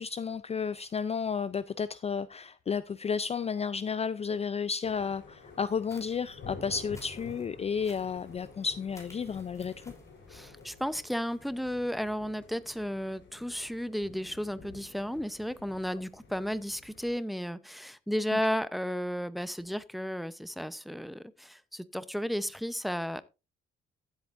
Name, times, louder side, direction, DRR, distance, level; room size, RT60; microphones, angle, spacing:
voice 1, 0.0-9.8, left 6 dB, 30° left, 0.4 m, -32 dB
sound 1, 4.8-17.2, left 4 dB, 70° left, 4.7 m, -50 dB
sound 2, 5.7-11.5, left 1 dB, 15° left, 3.5 m, -58 dB
voice 2, 10.3-23.2, equal, ahead, 0.8 m, -33 dB
15.5 x 8.1 x 2.6 m
cardioid pair, 90°, 20 cm